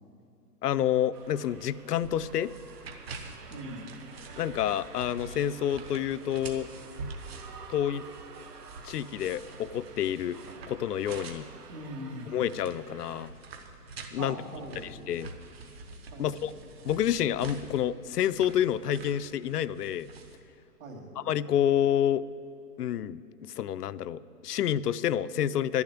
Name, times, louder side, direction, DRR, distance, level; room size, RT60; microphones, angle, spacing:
voice 1, 0.6-2.5 4.4-6.7 7.7-8.1 8.8-10.4 10.7-11.5 12.3-13.3 14.1-14.4 15.1-15.3 16.2-16.5 16.8-20.1 21.2-22.2 22.8-25.8, left 10 dB, 80° left, 16 dB, 0.6 m, -28 dB
sound 1, 1.1-13.3, right 5 dB, 80° right, 1.6 m, -50 dB
sound 2, 1.2-20.4, right 3 dB, 40° right, 1.1 m, -46 dB
voice 2, 3.5-3.9 11.7-12.3 14.2-15.0 16.1-16.4 20.8-21.1, right 1 dB, 55° right, -1 dB, 2.8 m, -41 dB
11.5 x 7.1 x 9.6 m, 2.7 s
hypercardioid pair, 175°, 47 cm